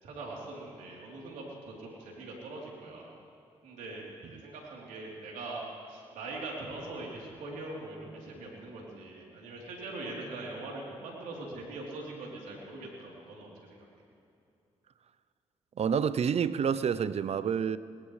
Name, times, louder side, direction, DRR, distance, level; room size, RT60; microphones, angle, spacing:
voice 1, 0.0-3.1 3.6-13.8, right 2 dB, 80° right, 3.5 m, -42 dB
voice 2, 15.8-17.8, right 7 dB, 50° right, 0.6 m, -28 dB
20.5 x 19.5 x 3.3 m
supercardioid pair, 50°, 13 cm